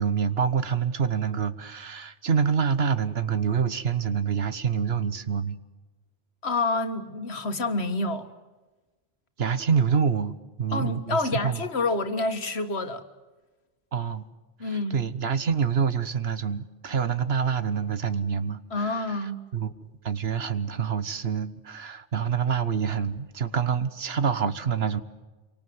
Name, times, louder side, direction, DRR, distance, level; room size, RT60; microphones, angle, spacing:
voice 1, 0.0-5.6 9.4-11.6 13.9-14.2 14.6-19.7 20.0-25.0, right 6 dB, 70° right, 1.4 m, -26 dB
voice 2, 6.4-8.3 10.7-13.0 14.6-15.0 18.7-19.4, left 2 dB, 75° left, 2.0 m, -28 dB
27.5 x 24.5 x 7.9 m
omnidirectional pair, 1.1 m